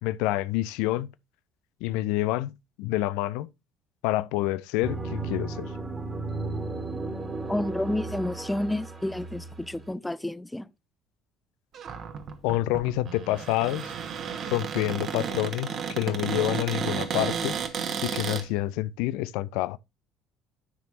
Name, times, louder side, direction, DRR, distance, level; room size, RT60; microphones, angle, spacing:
voice 1, 0.0-1.1 1.8-2.5 2.8-3.5 4.0-5.7 12.4-13.9 14.5-17.5 18.0-19.8, left 16 dB, 60° left, 0.4 m, -28 dB
sound 1, 4.8-9.8, right 3 dB, 25° right, 1.8 m, -34 dB
voice 2, 7.5-10.7, left 1 dB, 10° left, 0.5 m, -30 dB
Cupboard open or close, 11.7-18.4, right 7 dB, 45° right, 1.2 m, -32 dB
12.5 x 6.0 x 2.6 m
figure-of-eight pair, 55°, 0 cm